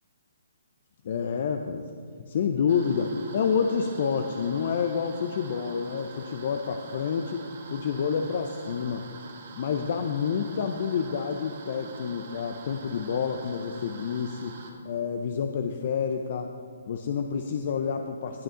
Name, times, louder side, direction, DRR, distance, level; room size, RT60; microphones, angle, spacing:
voice 1, 1.0-1.9 2.2-7.4 7.7-9.1 9.6-14.6 14.8-16.5 16.9-18.4, left 6 dB, 50° left, 6 dB, 0.6 m, -28 dB
sound 1, 2.7-14.7, right 4 dB, 55° right, 1.7 m, -45 dB
19.0 x 6.6 x 3.8 m, 2.3 s
hypercardioid pair, 150°, 0 cm